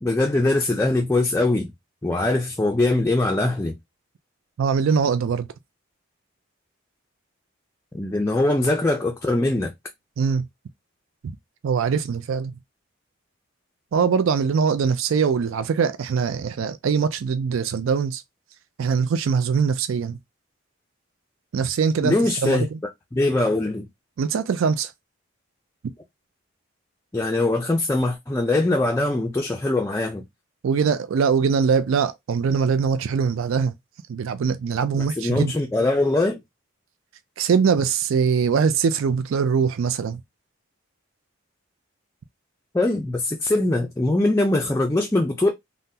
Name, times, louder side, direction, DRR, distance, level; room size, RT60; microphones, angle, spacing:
voice 1, 0.0-1.7 2.0-3.8 7.9-9.7 22.0-22.7 23.1-23.9 27.1-30.2 35.2-36.4 42.7-45.5, left 2 dB, 15° left, 0.3 m, -22 dB
voice 2, 4.6-5.5 10.2-10.5 11.6-12.5 13.9-18.2 18.8-20.2 21.5-22.1 22.4-22.8 24.2-24.9 30.6-33.7 34.1-35.5 37.4-40.2, right 6 dB, 80° right, 0.4 m, -22 dB
3.7 x 2.1 x 2.7 m
head